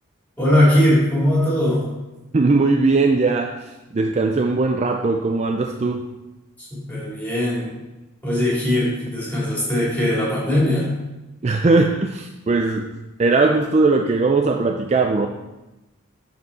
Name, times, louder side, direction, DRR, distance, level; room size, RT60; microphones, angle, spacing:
voice 1, 0.4-1.8 6.7-7.7 8.2-10.9, left 1 dB, 10° left, -7 dB, 3.1 m, -19 dB
voice 2, 2.3-6.1 11.4-12.9 13.2-15.3, right 3 dB, 30° right, 4 dB, 0.4 m, -19 dB
11.0 x 4.4 x 4.2 m, 1.0 s
head